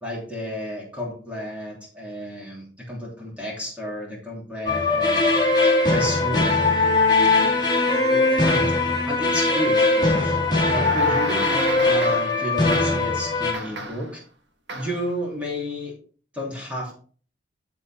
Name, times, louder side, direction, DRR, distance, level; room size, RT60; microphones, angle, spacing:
voice 1, 0.0-5.3 5.6-6.5 7.9-8.8 9.0-10.3 10.7-14.2 14.7-15.9 16.3-16.9, equal, 5° right, -3 dB, 3.2 m, -32 dB
sound 1, 4.7-13.5, left 3 dB, 20° left, 2.3 m, -20 dB
sound 2, 10.4-12.4 12.7-13.1 13.5-14.2 14.7-15.1, right 2 dB, 70° right, 1.5 m, -33 dB
12.0 x 4.3 x 4.3 m, 0.42 s
head